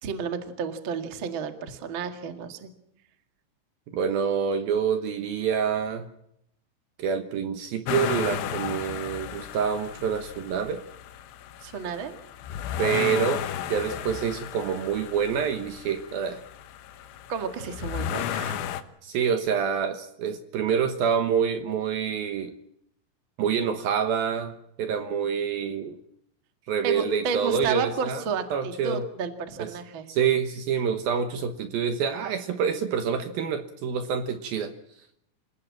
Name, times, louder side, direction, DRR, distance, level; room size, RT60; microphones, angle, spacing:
voice 1, 0.0-2.7 11.6-12.1 17.3-18.7 26.8-30.1, right 5 dB, 90° right, 7 dB, 1.1 m, -32 dB
voice 2, 3.9-6.1 7.0-10.8 12.8-16.4 19.0-22.5 23.4-26.0 26.7-28.2 28.5-29.0 29.6-29.7 30.1-34.7, right 7 dB, 70° right, 8 dB, 2.3 m, -27 dB
sound 1, 7.9-18.8, left 10 dB, 75° left, 3.4 m, -34 dB
27.5 x 17.0 x 7.5 m, 0.76 s
omnidirectional pair, 5.9 m